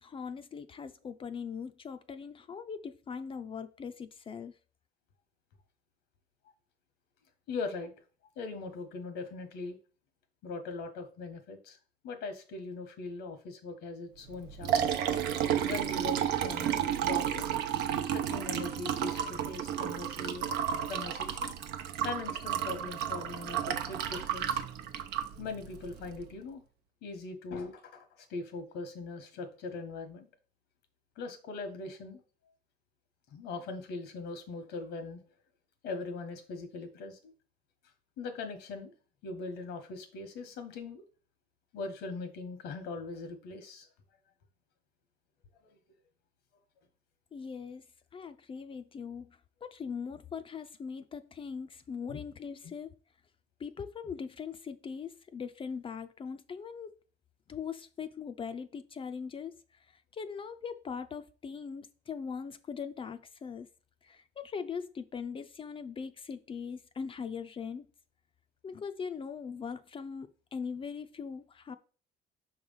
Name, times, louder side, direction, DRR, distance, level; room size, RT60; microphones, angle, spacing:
voice 1, 0.0-4.5 47.3-47.8 48.1-52.9 53.6-56.9 57.5-59.5 60.1-63.7 64.0-67.9 68.6-71.7, left 6 dB, 30° left, 0.4 m, -40 dB
voice 2, 7.5-7.9 8.4-9.8 10.4-11.8 12.0-14.8 15.6-17.5 18.1-20.6 20.9-21.5 22.0-24.6 25.4-26.6 27.0-30.3 31.2-32.2 33.3-35.2 35.8-37.2 38.2-38.9 39.2-41.0 41.7-43.9 45.6-45.7 52.1-52.2 52.6-52.7, left 3 dB, 85° left, 1.3 m, -40 dB
Liquid, 14.3-26.2, right 9 dB, 85° right, 0.7 m, -32 dB
5.7 x 3.2 x 5.5 m
cardioid pair, 110°, 17 cm